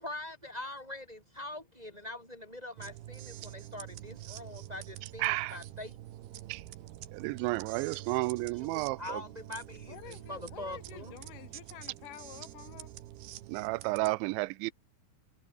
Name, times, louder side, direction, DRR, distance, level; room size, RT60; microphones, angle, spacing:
voice 1, 0.0-6.0 8.6-11.3, left 1 dB, 10° right, 3.0 m, -43 dB
sound 1, 2.8-14.1, right 14 dB, 70° right, 3.0 m, -47 dB
voice 2, 5.2-5.6 6.5-6.6 7.1-9.2 13.5-14.7, right 23 dB, 90° right, 2.9 m, -32 dB
voice 3, 9.9-12.9, left 13 dB, 70° left, 2.1 m, -49 dB
omnidirectional pair, 5.2 m